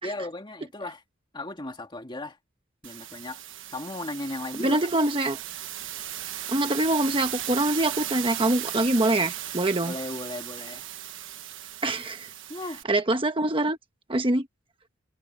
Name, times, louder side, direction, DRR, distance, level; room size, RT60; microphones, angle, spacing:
voice 1, 0.0-1.0 1.3-2.4 2.8-3.4 3.7-4.8 9.8-10.9 12.5-12.8, left 2 dB, 25° left, 2.4 m, -36 dB
sound 1, 2.8-12.8, right 12 dB, 65° right, 1.3 m, -36 dB
voice 2, 4.6-5.4 6.5-9.9 11.8-12.3 12.9-13.8 14.1-14.5, right 1 dB, 25° right, 1.1 m, -24 dB
head